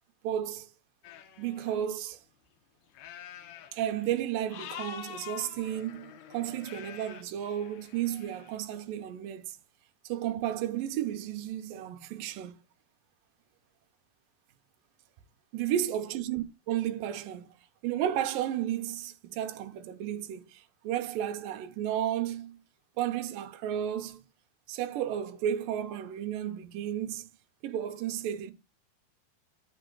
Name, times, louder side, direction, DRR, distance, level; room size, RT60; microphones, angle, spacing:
voice 1, 0.2-0.7 1.4-2.2 3.7-9.6 10.0-12.5 15.5-17.5 17.8-22.6 23.0-24.2 24.7-27.3 27.6-28.5, right 11 dB, 70° right, 2.5 m, -33 dB
sound 1, 1.0-1.8 3.0-4.2 4.5-8.6, left 9 dB, 80° left, 3.0 m, -46 dB
11.5 x 5.5 x 3.9 m
omnidirectional pair, 4.6 m